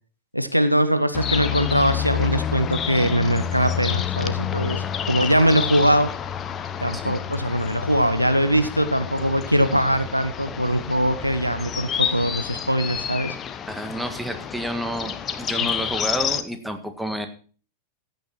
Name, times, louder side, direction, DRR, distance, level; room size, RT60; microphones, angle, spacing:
voice 1, 0.3-6.1 6.8-13.4 15.6-15.7, equal, 90° right, 10 dB, 1.1 m, -22 dB
sound 1, 1.1-16.4, left 8 dB, 25° left, 0.9 m, -29 dB
voice 2, 13.7-17.3, equal, ahead, 7 dB, 1.8 m, -30 dB
15.0 x 9.2 x 4.3 m, 0.38 s
figure-of-eight pair, 90°, 0 cm